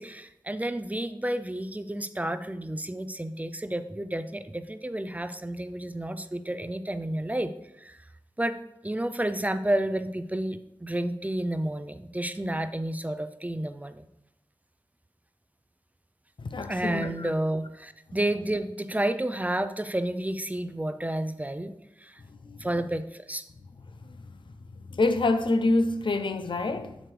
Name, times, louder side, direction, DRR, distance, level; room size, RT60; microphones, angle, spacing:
voice 1, 0.0-7.5 7.8-8.0 8.4-8.6 8.8-14.0 16.7-22.2 22.6-23.4, right 1 dB, 20° right, 0.5 m, -31 dB
voice 2, 16.4-17.3 22.4-22.7 24.0-24.3 24.8-27.0, left 2 dB, 75° left, 0.6 m, -27 dB
7.7 x 6.4 x 3.3 m
wide cardioid pair, 50°, 8 cm